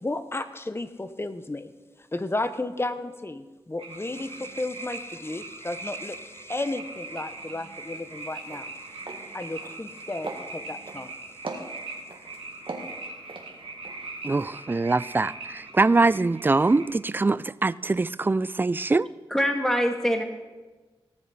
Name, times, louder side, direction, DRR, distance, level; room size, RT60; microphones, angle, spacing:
voice 1, 0.0-1.7 2.1-8.8 9.3-11.1, left 2 dB, 25° left, 10 dB, 0.9 m, -33 dB
sound 1, 3.8-16.9, right 3 dB, 90° right, 2.5 m, -41 dB
sound 2, 7.9-8.1 8.4-8.6 9.0-9.2 9.6-10.0 10.2-11.0 11.4-12.2 12.7-14.0 14.3-14.5, right 3 dB, 65° right, 1.8 m, -38 dB
voice 2, 14.2-19.1, right 3 dB, 20° right, 18 dB, 0.3 m, -23 dB
voice 3, 19.3-20.2, equal, 5° left, 3 dB, 1.7 m, -24 dB
18.0 x 7.4 x 4.2 m, 1.2 s
cardioid pair, 50°, 10 cm